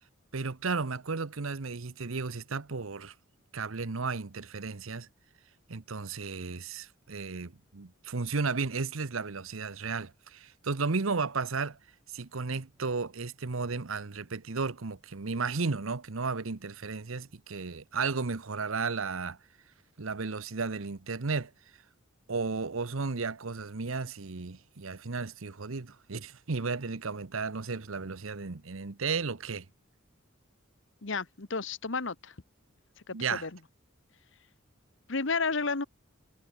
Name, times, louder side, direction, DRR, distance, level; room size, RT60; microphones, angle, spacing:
voice 1, 0.3-3.1 3.5-5.1 5.7-11.8 12.1-19.4 20.0-21.5 22.3-29.6 33.1-33.5, right 4 dB, 80° right, 1.0 m, -34 dB
voice 2, 31.0-32.3 33.1-33.5 35.1-35.8, left 4 dB, 65° left, 1.4 m, -32 dB
head